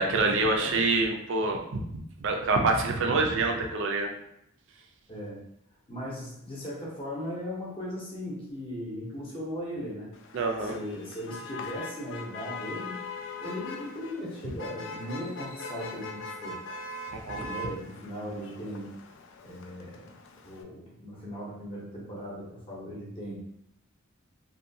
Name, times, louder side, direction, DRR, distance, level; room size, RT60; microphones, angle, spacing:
voice 1, 0.0-1.9 2.2-4.1 10.3-10.8 17.1-17.5, right 3 dB, 60° right, 2 dB, 0.4 m, -26 dB
voice 2, 0.5-1.1 5.1-5.4 5.9-10.1 10.6-13.0 13.4-16.6 17.4-19.0 19.4-20.1 20.4-23.5, equal, 25° left, -5 dB, 0.7 m, -38 dB
Motor vehicle (road), 10.1-20.6, left 3 dB, 60° left, 0.3 m, -41 dB
2.7 x 2.2 x 2.6 m, 0.77 s
head